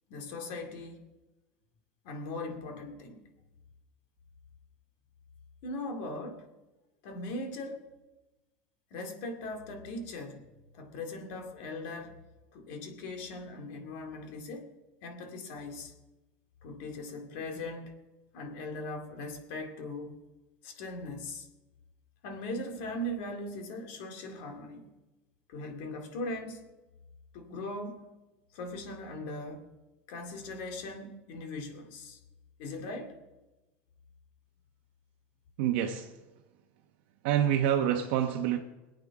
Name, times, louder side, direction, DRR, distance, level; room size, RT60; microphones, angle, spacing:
voice 1, 0.1-1.0 2.0-3.2 5.6-6.5 7.0-7.9 8.9-12.2 12.5-14.7 15.0-15.9 16.6-17.9 18.3-20.2 20.6-21.5 22.2-24.9 25.5-26.7 27.3-28.0 28.5-29.7 30.1-32.2 32.6-33.2, left 2 dB, 55° left, 2.3 m, -39 dB
voice 2, 35.6-36.2 37.2-38.6, right 10 dB, 65° right, 1.0 m, -27 dB
22.0 x 8.8 x 4.9 m
cardioid pair, 175°, 6 cm